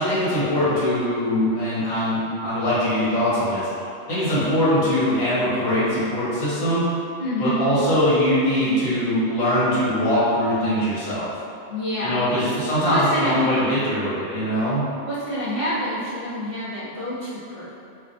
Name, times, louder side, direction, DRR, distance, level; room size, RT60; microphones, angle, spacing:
voice 1, 0.0-3.7 4.1-6.8 7.4-11.3 12.0-14.9, equal, 85° left, -11 dB, 1.7 m, -22 dB
voice 2, 7.2-7.7 11.7-12.5 12.8-13.4 15.0-17.7, equal, 40° right, -12 dB, 0.5 m, -27 dB
4.9 x 2.2 x 2.6 m, 2.6 s
omnidirectional pair, 1.4 m